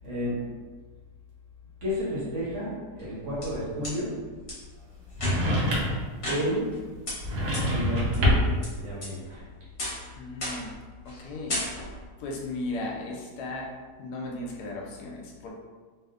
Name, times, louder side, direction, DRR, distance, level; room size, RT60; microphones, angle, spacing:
voice 1, 0.0-0.4 1.8-4.1 6.3-6.7 7.6-8.4 8.7-9.4, equal, 55° right, -7 dB, 0.9 m, -31 dB
sound 1, 3.0-3.9 4.5-4.6 5.1-5.6 6.2-6.8 7.1-7.2 7.5-7.6 8.1-8.7 9.0-9.4 9.8-10.1 10.4-10.7 11.0-11.2 11.5-12.1, left 1 dB, 45° left, 1.0 m, -34 dB
sound 2, 5.2-6.1 7.2-8.6, equal, 75° right, 1.2 m, -25 dB
voice 2, 10.2-10.7 11.0-11.6 12.2-13.7 14.0-15.5, left 2 dB, 75° left, -2 dB, 1.1 m, -36 dB
3.0 x 2.0 x 2.3 m, 1.4 s
omnidirectional pair, 1.8 m